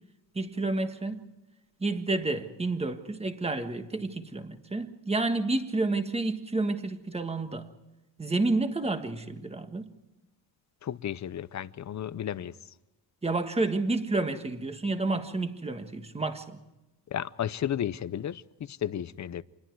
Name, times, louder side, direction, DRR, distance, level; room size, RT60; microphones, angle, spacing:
voice 1, 0.3-1.3 1.8-7.7 8.2-9.9 13.2-16.6, right 2 dB, 15° right, 1.5 m, -30 dB
voice 2, 10.8-12.6 17.1-19.4, left 10 dB, 40° left, 0.7 m, -33 dB
28.0 x 21.5 x 4.7 m
cardioid pair, 155°, 45 cm